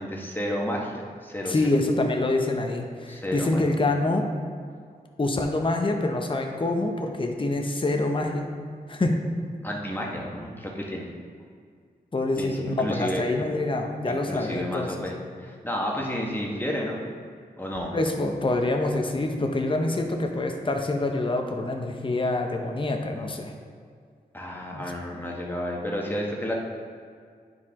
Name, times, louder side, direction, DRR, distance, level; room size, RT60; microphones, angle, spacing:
voice 1, 0.0-1.6 3.1-3.6 9.6-11.1 12.4-13.2 14.1-17.0 17.6-18.0 24.3-26.5, equal, 10° left, -2 dB, 1.5 m, -31 dB
voice 2, 1.5-4.3 5.2-8.5 8.9-9.2 12.1-14.9 17.9-23.5 24.7-24.8, left 2 dB, 30° left, 3 dB, 0.8 m, -26 dB
9.6 x 4.7 x 3.7 m, 2.1 s
cardioid pair, 55°, 17 cm